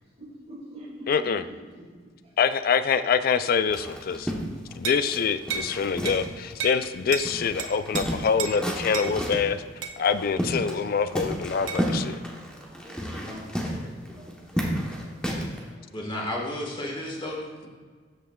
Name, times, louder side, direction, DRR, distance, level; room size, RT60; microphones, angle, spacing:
voice 1, 0.2-1.5 2.2-2.3 12.5-15.0 15.4-16.0, equal, 35° right, -9 dB, 2.2 m, -44 dB
voice 2, 1.1-1.4 2.4-4.3 4.8-9.6 10.0-12.2, left 6 dB, 50° left, 12 dB, 0.4 m, -25 dB
sound 1, 3.7-6.5 6.8-6.9 7.2-9.5 10.0-10.9 11.1-15.6, equal, 5° left, 1.0 m, -31 dB
sound 2, 4.8-5.1 5.5-5.7 6.1-6.2 6.6-6.8 7.1-7.3 7.6-8.0 8.4-8.6 8.9-9.1 9.8-10.0 11.7-11.8, right 6 dB, 80° right, 0.7 m, -32 dB
voice 3, 15.9-17.7, left 1 dB, 25° left, -1 dB, 1.5 m, -33 dB
13.0 x 5.7 x 2.3 m, 1.5 s
head